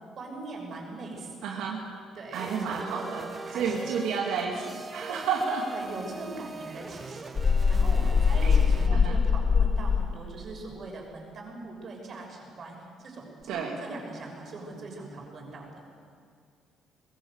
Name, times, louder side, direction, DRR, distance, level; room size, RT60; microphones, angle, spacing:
voice 1, 0.2-1.7 2.1-3.9 5.6-7.4 7.7-15.8, right 2 dB, 50° right, 0 dB, 6.5 m, -41 dB
voice 2, 1.4-1.8 2.3-3.3 3.5-5.6 8.4-9.2 13.5-13.8, right 5 dB, 85° right, -1 dB, 2.2 m, -31 dB
sound 1, 2.3-8.9, right 4 dB, 30° right, 1.1 m, -42 dB
sound 2, 7.4-10.2, left 5 dB, 35° left, 0.8 m, -22 dB
21.0 x 16.0 x 8.1 m, 2.2 s
cardioid pair, 90°, 0 cm